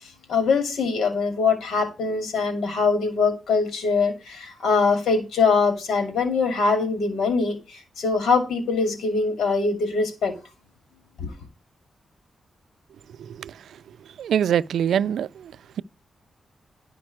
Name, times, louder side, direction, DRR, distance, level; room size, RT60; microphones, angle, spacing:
voice 1, 0.3-10.3 11.2-11.3, left 4 dB, 80° left, 2.4 m, -23 dB
voice 2, 14.2-15.5, right 9 dB, 85° right, 0.4 m, -23 dB
11.5 x 5.2 x 4.6 m
cardioid pair, 75°, 0 cm